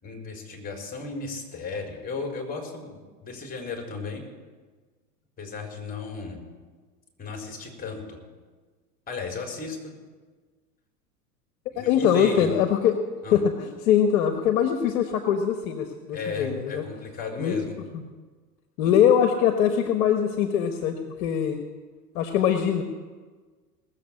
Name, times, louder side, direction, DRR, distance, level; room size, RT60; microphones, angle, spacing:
voice 1, 0.0-4.2 5.4-6.4 7.2-8.2 9.1-9.9 11.7-12.6 13.2-13.4 16.1-17.8 18.8-18.9, left 4 dB, 20° left, 1 dB, 4.2 m, -35 dB
voice 2, 11.8-13.0 13.3-16.8 17.4-17.6 18.8-21.6 22.1-22.8, left 8 dB, 55° left, 6 dB, 1.4 m, -22 dB
19.0 x 7.5 x 8.6 m, 1.4 s
hypercardioid pair, 95°, 49 cm